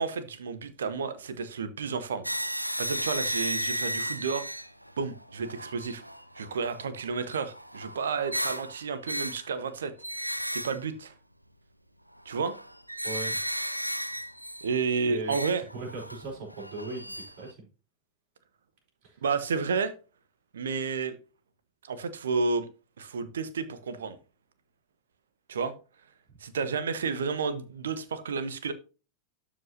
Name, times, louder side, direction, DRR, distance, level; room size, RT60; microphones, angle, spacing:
voice 1, 0.0-2.3 2.5-4.5 5.0-6.0 6.4-11.1 12.2-12.6 14.6-15.6 19.2-19.9 20.5-21.2 21.8-22.7 23.0-24.2 25.5-25.7 26.4-28.7, right 5 dB, 65° right, 1.0 m, -31 dB
sound 1, 2.2-9.6 10.0-10.8 12.2-14.8 15.2-17.5, equal, 90° right, 0.5 m, -35 dB
voice 2, 13.0-13.4 15.0-15.3 15.7-17.7 19.0-19.2 26.3-26.4, right 3 dB, 45° right, 4.5 m, -38 dB
12.0 x 5.2 x 2.8 m
figure-of-eight pair, 90°, 0 cm